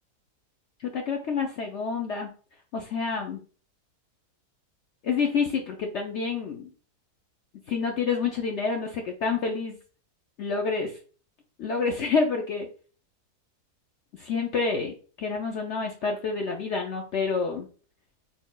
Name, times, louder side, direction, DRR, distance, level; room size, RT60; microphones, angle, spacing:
voice 1, 0.8-2.3 2.7-3.4 5.0-6.7 7.7-9.8 10.4-11.0 11.6-12.7 14.2-17.7, left 5 dB, 65° left, 2 dB, 0.7 m, -28 dB
4.1 x 3.6 x 2.3 m, 0.39 s
omnidirectional pair, 1.7 m